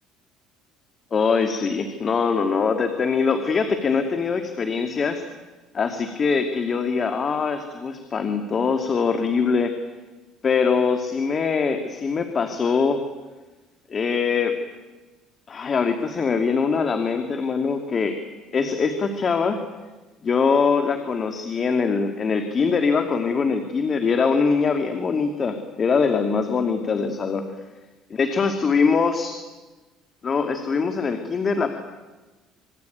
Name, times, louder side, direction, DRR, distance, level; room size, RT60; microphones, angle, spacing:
voice 1, 1.1-5.2 5.7-9.8 10.4-13.0 13.9-14.6 15.5-18.2 18.5-19.6 20.2-27.4 28.1-29.4 30.2-31.7, left 5 dB, 35° left, 6 dB, 2.5 m, -22 dB
26.5 x 22.0 x 9.4 m, 1.2 s
cardioid pair, 105°, 0 cm